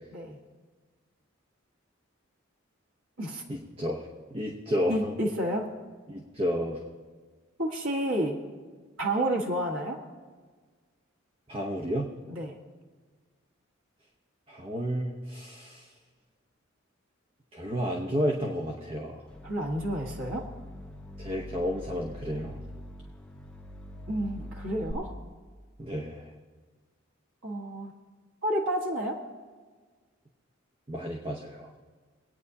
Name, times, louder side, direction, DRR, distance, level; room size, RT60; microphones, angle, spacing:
voice 1, 3.5-5.1 6.1-6.8 11.5-12.1 14.5-15.9 17.5-19.3 21.2-22.6 25.8-26.3 30.9-31.7, equal, 30° right, 0 dB, 0.9 m, -31 dB
voice 2, 4.9-5.7 7.6-8.4 9.0-10.0 12.3-12.6 19.4-20.5 24.1-25.1 27.4-27.9 28.4-29.2, right 1 dB, 75° right, -2 dB, 1.6 m, -30 dB
sound 1, 19.3-24.9, left 1 dB, 5° left, 0.7 m, -43 dB
25.0 x 9.2 x 2.8 m, 1.5 s
head